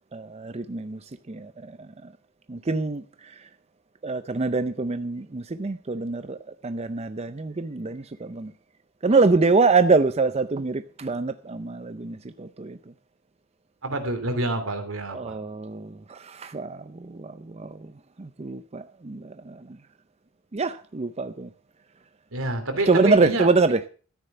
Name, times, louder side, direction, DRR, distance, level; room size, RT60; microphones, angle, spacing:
voice 1, 0.1-2.1 2.5-3.5 4.0-8.5 9.0-12.9 15.1-17.9 18.2-19.8 20.5-21.5 22.9-23.9, right 3 dB, 30° right, 0.6 m, -25 dB
voice 2, 13.8-15.4 22.3-23.5, right 2 dB, 80° right, 3.1 m, -28 dB
13.5 x 9.9 x 5.7 m
head